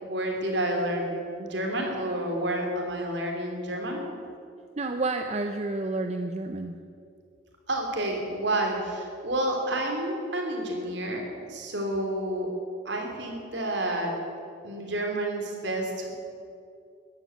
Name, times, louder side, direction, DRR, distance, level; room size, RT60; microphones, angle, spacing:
voice 1, 0.0-1.1 1.4-4.0 7.7-11.2 11.5-12.5 12.8-14.1 14.6-16.1, right 1 dB, 65° right, 1 dB, 3.1 m, -29 dB
voice 2, 4.8-6.8, right 2 dB, 35° right, 6 dB, 0.6 m, -30 dB
13.5 x 10.5 x 9.1 m, 2.4 s
head